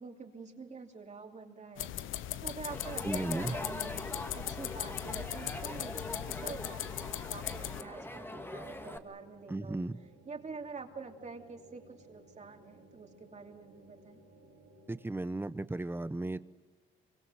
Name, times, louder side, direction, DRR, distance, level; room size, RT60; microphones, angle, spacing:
voice 1, 0.0-1.9 2.4-4.0 4.3-5.9 6.3-9.8 10.2-14.2, right 4 dB, 35° right, 3 dB, 3.0 m, -47 dB
sound 1, 1.8-7.8, left 13 dB, 80° left, 0.8 m, -39 dB
sound 2, 1.8-15.1, right 2 dB, 70° right, 5.4 m, -59 dB
Crowd, 2.7-9.0, left 1 dB, 10° left, 1.8 m, -42 dB
voice 2, 3.0-3.6 9.5-10.0 14.9-16.4, right 2 dB, 10° right, 14 dB, 0.9 m, -35 dB
25.5 x 23.5 x 7.6 m, 1.4 s
cardioid pair, 90°, 20 cm